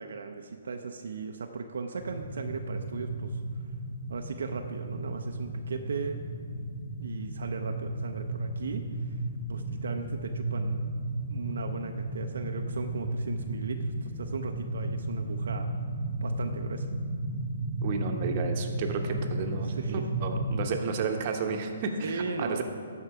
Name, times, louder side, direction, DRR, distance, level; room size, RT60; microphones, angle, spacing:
voice 1, 0.0-3.7 4.1-6.2 6.6-6.7 7.0-9.2 9.5-10.8 11.3-15.7 16.2-16.9 19.6-20.1 22.0-22.6, right 4 dB, 75° right, 4 dB, 0.5 m, -37 dB
sound 1, 2.0-20.7, right 1 dB, 15° right, 1.4 m, -34 dB
voice 2, 17.8-22.6, right 5 dB, 40° right, 4 dB, 0.9 m, -32 dB
12.5 x 4.5 x 4.8 m, 2.3 s
hypercardioid pair, 150°, 0 cm